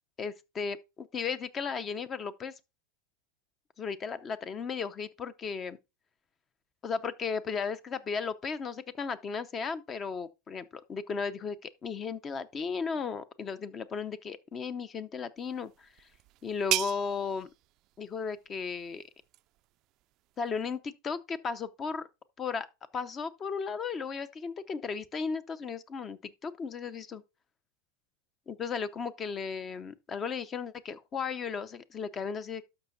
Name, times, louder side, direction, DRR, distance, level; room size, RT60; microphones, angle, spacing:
voice 1, 0.2-2.5 3.8-5.8 6.8-16.1 16.4-17.5 18.0-19.0 20.4-22.1 22.4-22.7 22.9-27.2 28.5-32.6, left 5 dB, 30° left, 0.7 m, -35 dB
sound 1, 15.4-20.8, right 17 dB, 50° right, 0.3 m, -39 dB
12.0 x 5.8 x 2.7 m
hypercardioid pair, 105°, 0 cm